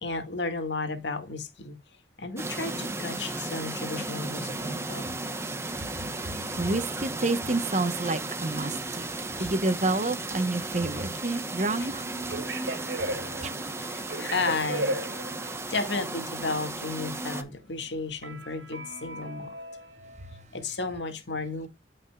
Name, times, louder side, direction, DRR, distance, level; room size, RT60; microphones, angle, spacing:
voice 1, 0.0-1.8 2.2-5.1 9.4-9.5 11.8-11.9 13.9-15.0 15.7-19.5 20.5-21.7, left 3 dB, 75° left, 1.8 m, -33 dB
sound 1, 2.4-17.4, right 2 dB, 15° right, 0.9 m, -35 dB
voice 2, 6.2-9.1 9.4-12.1, right 2 dB, 40° right, 1.0 m, -29 dB
sound 2, 12.1-15.8 18.2-20.4, right 1 dB, 75° right, 1.4 m, -36 dB
14.5 x 5.4 x 2.3 m
head